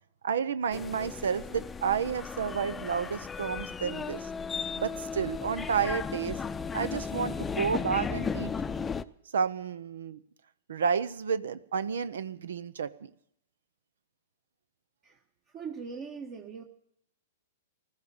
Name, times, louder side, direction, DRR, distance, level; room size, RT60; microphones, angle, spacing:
voice 1, 0.2-4.3 4.8-6.4 6.7-8.5 9.3-10.2 10.7-13.1, right 7 dB, 80° right, 16 dB, 0.7 m, -31 dB
sound 1, 0.7-9.0, left 5 dB, 15° left, 0.6 m, -35 dB
voice 2, 15.0-16.6, right 5 dB, 35° right, 3 dB, 1.6 m, -41 dB
15.5 x 13.5 x 7.1 m, 0.74 s
hypercardioid pair, 125°, 0 cm